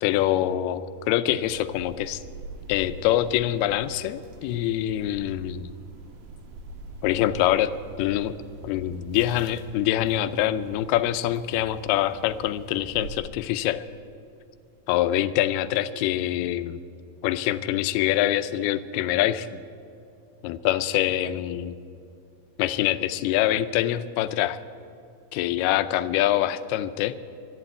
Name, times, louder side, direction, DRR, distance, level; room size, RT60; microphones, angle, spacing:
voice 1, 0.0-2.2 2.7-5.7 7.0-7.7 8.0-8.3 8.6-13.8 14.9-16.8 17.2-19.6 20.4-21.8 22.6-24.6 25.3-27.1, left 13 dB, 85° left, 12 dB, 2.5 m, -25 dB
sound 1, 1.4-13.1, right 3 dB, 75° right, 3.1 m, -43 dB
11.5 x 11.0 x 9.2 m, 2.6 s
omnidirectional pair, 4.6 m